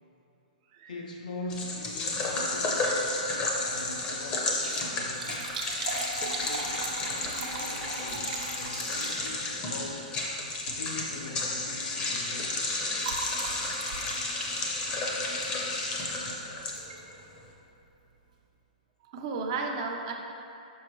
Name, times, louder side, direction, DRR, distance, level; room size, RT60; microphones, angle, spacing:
voice 1, 0.9-5.6 6.4-10.1 10.8-12.8, left 3 dB, 75° left, 2 dB, 0.5 m, -43 dB
sound 1, 1.5-17.1, left 2 dB, 20° left, 0.6 m, -32 dB
Liquid, 2.6-3.1 3.4-3.5 4.4-9.6 10.6-10.8 11.2-11.4 11.7-15.8 16.7-17.0 17.5-17.6 17.8-17.9, right 3 dB, 70° right, 0.8 m, -39 dB
voice 2, 19.0-20.1, right 4 dB, 35° right, 2 dB, 0.4 m, -34 dB
6.2 x 5.0 x 3.0 m, 2.7 s
hypercardioid pair, 170°, 4 cm